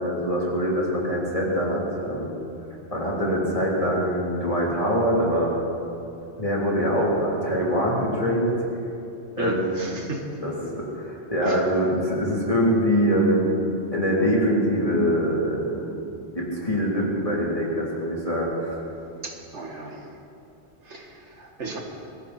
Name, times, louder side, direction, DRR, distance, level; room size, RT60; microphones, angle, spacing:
voice 1, 0.0-2.3 2.9-5.5 6.4-8.5 9.4-9.7 10.4-13.5 13.9-15.9 16.3-18.8, equal, 30° left, -5 dB, 3.4 m, -24 dB
voice 2, 9.4-10.2 11.4-11.6 19.2-20.1 20.8-21.8, right 3 dB, 85° right, 1 dB, 2.1 m, -34 dB
23.0 x 14.5 x 4.3 m, 2.7 s
omnidirectional pair, 1.2 m